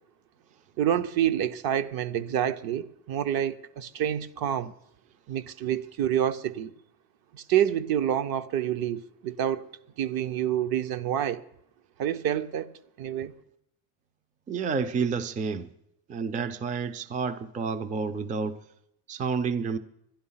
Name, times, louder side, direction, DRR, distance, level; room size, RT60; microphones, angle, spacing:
voice 1, 0.8-4.7 5.3-6.7 7.3-9.7 10.0-11.4 12.0-12.7 13.0-13.3, right 10 dB, 55° right, 0.7 m, -28 dB
voice 2, 14.5-15.7 16.1-18.6 19.1-19.8, right 5 dB, 20° right, 0.4 m, -29 dB
11.5 x 11.0 x 5.6 m
cardioid pair, 130°, 43 cm